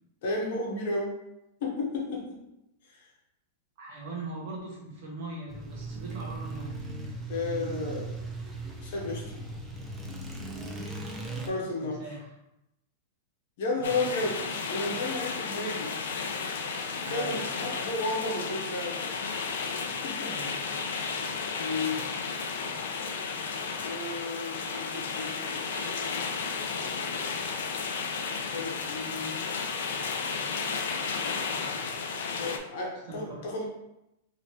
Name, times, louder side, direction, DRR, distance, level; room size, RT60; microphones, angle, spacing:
voice 1, 0.2-1.2 1.6-2.4 2.9-3.0 7.3-8.1 8.8-9.3 11.5-12.0 13.6-16.0 17.1-19.0 19.6-19.7 20.0-20.3 21.6-22.2 23.9-26.3 28.5-29.4 32.4-33.6, left 2 dB, 60° left, -1 dB, 0.9 m, -33 dB
voice 2, 3.8-6.8 11.3-11.5 11.8-12.3 13.8-14.3 17.0-17.4 20.3-20.6 33.1-33.5, right 2 dB, 50° right, -2 dB, 0.9 m, -41 dB
sound 1, 5.5-11.5, right 2 dB, 15° right, 0.5 m, -38 dB
sound 2, 13.8-32.6, left 5 dB, 80° left, 0.4 m, -33 dB
3.0 x 2.8 x 2.9 m, 0.87 s
supercardioid pair, 160°, 0 cm